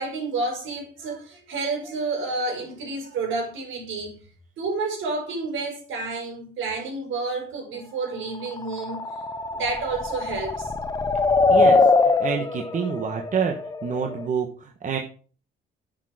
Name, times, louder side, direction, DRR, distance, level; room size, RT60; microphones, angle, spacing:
voice 1, 0.0-4.1 4.6-9.1 9.5-10.7, right 3 dB, 85° right, 5.2 m, -30 dB
sound 1, 8.5-14.3, left 3 dB, 20° left, 0.8 m, -23 dB
voice 2, 11.5-11.9 12.2-13.5 13.8-15.0, right 6 dB, 40° right, 1.3 m, -27 dB
10.5 x 6.6 x 5.0 m
cardioid pair, 130°, 20 cm